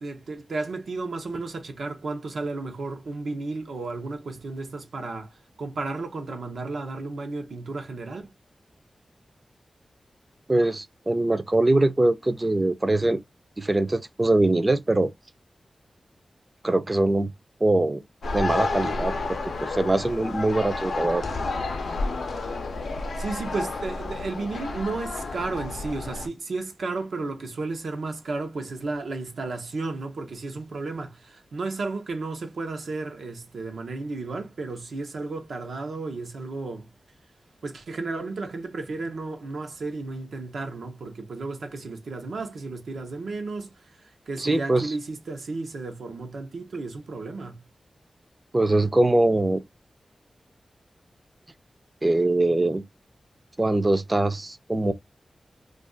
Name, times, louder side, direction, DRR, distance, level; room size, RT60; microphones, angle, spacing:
voice 1, 0.0-8.3 23.2-36.9 37.6-47.6, right 3 dB, 85° right, 0.7 m, -33 dB
voice 2, 10.5-13.2 13.6-15.1 16.6-17.3 17.6-18.0 18.3-21.2 44.4-44.9 48.5-49.6 52.0-52.8 53.6-54.9, right 2 dB, 30° right, 0.5 m, -22 dB
sound 1, 18.2-26.3, left 3 dB, 90° left, 0.5 m, -30 dB
2.4 x 2.3 x 3.7 m
cardioid pair, 65°, 0 cm